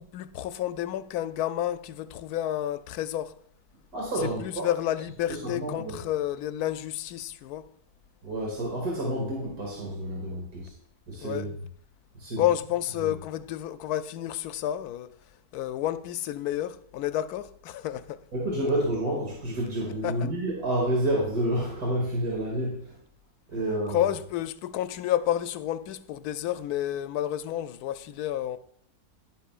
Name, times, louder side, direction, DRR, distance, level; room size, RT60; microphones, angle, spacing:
voice 1, 0.0-3.4 4.2-7.7 11.2-11.5 12.4-15.1 15.5-18.2 20.0-20.2 23.9-28.6, left 12 dB, 75° left, 1.0 m, -30 dB
voice 2, 3.9-4.7 5.3-5.9 8.2-10.7 11.1-11.5 12.1-12.5 13.0-13.1 18.3-22.9 23.5-24.1, right 1 dB, 65° right, 2.7 m, -29 dB
11.0 x 10.0 x 2.4 m
omnidirectional pair, 1.7 m